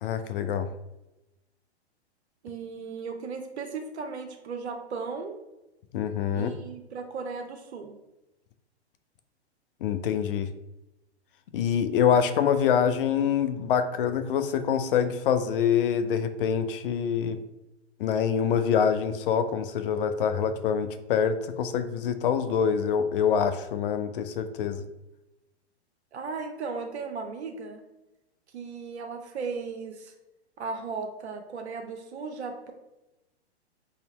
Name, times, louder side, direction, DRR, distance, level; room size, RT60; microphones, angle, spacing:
voice 1, 0.0-0.7 5.9-6.5 9.8-10.5 11.5-17.4 18.0-24.8, left 7 dB, 55° left, 9 dB, 0.4 m, -25 dB
voice 2, 2.4-5.4 6.3-8.0 26.1-27.8 28.5-30.1 30.6-32.7, right 4 dB, 75° right, 4 dB, 0.6 m, -36 dB
2.8 x 2.6 x 4.2 m, 0.98 s
hypercardioid pair, 115°, 34 cm